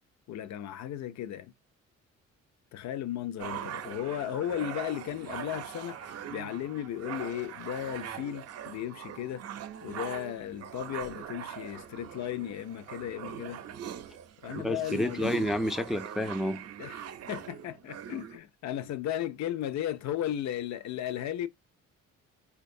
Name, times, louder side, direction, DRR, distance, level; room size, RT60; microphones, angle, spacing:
voice 1, 0.3-1.5 2.7-9.4 9.8-13.6 14.4-15.4 16.8-21.5, left 11 dB, 65° left, 0.5 m, -35 dB
sound 1, 3.4-18.4, right 9 dB, 55° right, 0.5 m, -41 dB
voice 2, 14.6-16.7, left 1 dB, ahead, 0.3 m, -29 dB
4.4 x 2.3 x 2.6 m
cardioid pair, 90°, 30 cm